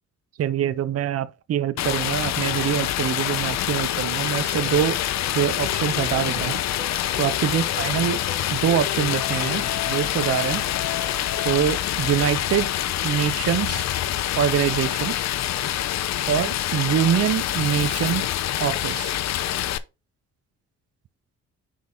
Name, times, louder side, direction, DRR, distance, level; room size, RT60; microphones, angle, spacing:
voice 1, 0.4-5.0 5.3-6.6 7.2-8.2 8.5-10.6 11.4-12.7 13.0-13.8 14.4-15.2 16.3-18.3 18.6-19.1, right 9 dB, 50° right, 0.7 m, -24 dB
Stream, 1.8-19.8, left 12 dB, 65° left, 0.7 m, -26 dB
sound 1, 4.1-12.2, left 8 dB, 40° left, 3.1 m, -37 dB
9.5 x 4.0 x 3.5 m
cardioid pair, 90°, 30 cm